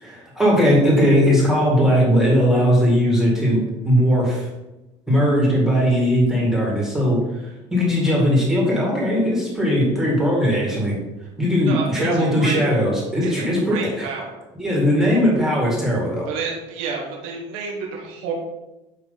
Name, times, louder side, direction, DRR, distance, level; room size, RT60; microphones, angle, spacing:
voice 1, 0.0-4.5 5.1-11.0 11.4-14.1 14.5-16.3, equal, 5° right, -4 dB, 2.1 m, -19 dB
voice 2, 11.6-12.6 13.2-14.4 16.3-18.3, right 5 dB, 85° right, -1 dB, 1.4 m, -30 dB
8.9 x 3.0 x 4.0 m, 1.0 s
supercardioid pair, 110°, 13 cm